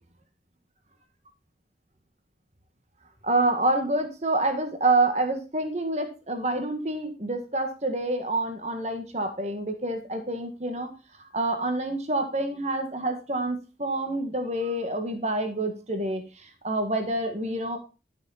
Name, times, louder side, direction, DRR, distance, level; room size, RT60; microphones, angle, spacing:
voice 1, 3.2-10.9 11.3-16.2 16.6-17.8, right 2 dB, 40° right, 6 dB, 1.7 m, -27 dB
12.0 x 6.5 x 4.2 m, 0.30 s
head